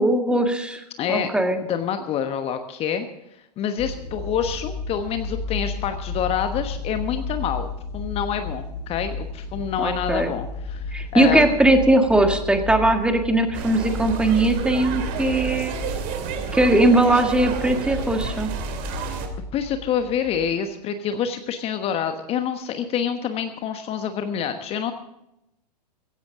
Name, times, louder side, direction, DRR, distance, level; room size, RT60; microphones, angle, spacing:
voice 1, 0.0-1.6 9.8-10.3 10.9-15.8 16.5-18.5, right 1 dB, 5° right, 6 dB, 1.7 m, -19 dB
voice 2, 1.0-1.3 1.7-3.1 3.6-11.6 19.5-24.9, left 8 dB, 30° left, 8 dB, 1.2 m, -27 dB
sound 1, 3.8-20.5, left 2 dB, 45° left, 4.0 m, -33 dB
sound 2, 13.5-19.3, right 6 dB, 40° right, 2.7 m, -30 dB
16.0 x 16.0 x 3.7 m, 0.85 s
figure-of-eight pair, 105°, 21 cm